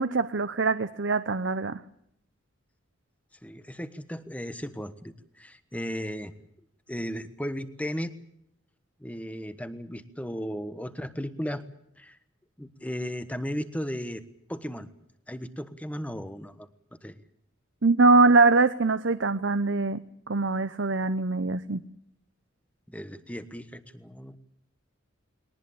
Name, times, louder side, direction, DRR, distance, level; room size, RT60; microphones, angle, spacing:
voice 1, 0.0-1.8 17.8-20.0 20.3-21.8, right 3 dB, 60° right, 11 dB, 0.8 m, -23 dB
voice 2, 3.4-6.3 6.9-8.1 9.0-11.6 12.0-12.2 12.6-14.2 14.5-14.9 15.3-16.7 17.0-17.2 22.9-24.4, equal, 5° left, 12 dB, 1.3 m, -35 dB
21.5 x 19.0 x 8.8 m, 0.73 s
head